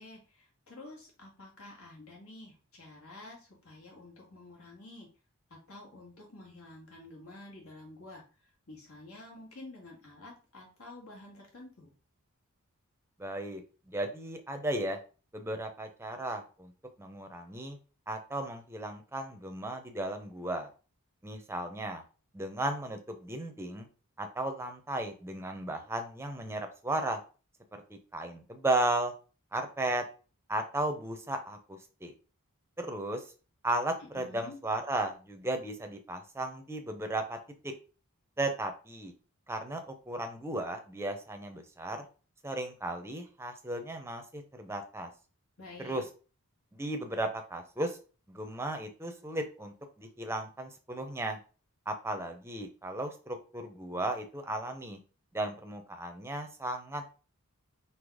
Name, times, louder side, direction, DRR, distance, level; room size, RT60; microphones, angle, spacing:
voice 1, 0.0-5.1 5.5-8.2 8.7-11.9 34.1-34.6 45.6-46.0, left 2 dB, 70° left, -2 dB, 2.1 m, -49 dB
voice 2, 13.2-13.6 13.9-15.0 15.3-16.7 17.0-17.8 18.1-20.7 21.2-22.0 22.3-23.9 24.2-27.2 27.7-29.1 29.5-30.0 30.5-32.1 32.8-33.2 33.6-37.4 37.6-37.7 38.4-39.1 39.5-42.1 42.4-45.1 45.8-46.0 46.7-48.0 48.3-51.4 51.9-55.0 55.3-57.1, right 1 dB, 10° right, 5 dB, 0.7 m, -35 dB
4.0 x 2.8 x 4.8 m, 0.36 s
head